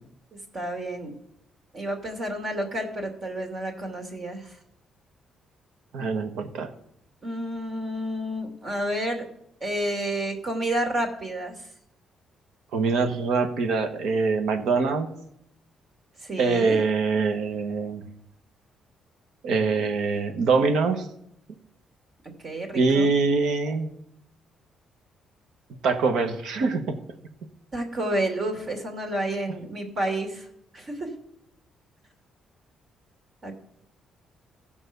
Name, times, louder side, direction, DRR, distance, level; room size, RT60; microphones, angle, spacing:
voice 1, 0.5-1.1 1.7-4.5 7.2-9.2 9.6-11.5 16.2-16.8 22.4-23.1 27.7-30.5 30.7-31.1 33.4-33.5, right 1 dB, 45° right, 3 dB, 2.6 m, -30 dB
voice 2, 5.9-6.7 12.7-15.1 16.4-18.0 19.4-21.1 22.7-23.9 25.8-27.0, right 4 dB, 80° right, 8 dB, 1.3 m, -24 dB
15.0 x 5.4 x 6.7 m, 0.74 s
cardioid pair, 90°, 0 cm